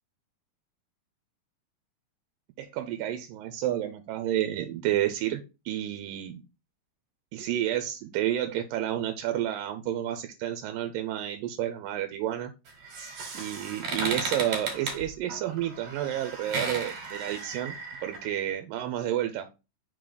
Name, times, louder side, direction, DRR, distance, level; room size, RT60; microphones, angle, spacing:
voice 1, 2.6-6.4 7.3-12.5 13.3-17.7 18.0-19.5, right 12 dB, 85° right, 7 dB, 2.4 m, -30 dB
sound 1, 12.7-18.2, right 4 dB, 60° right, 3.0 m, -35 dB
5.2 x 3.9 x 4.8 m, 0.27 s
omnidirectional pair, 4.0 m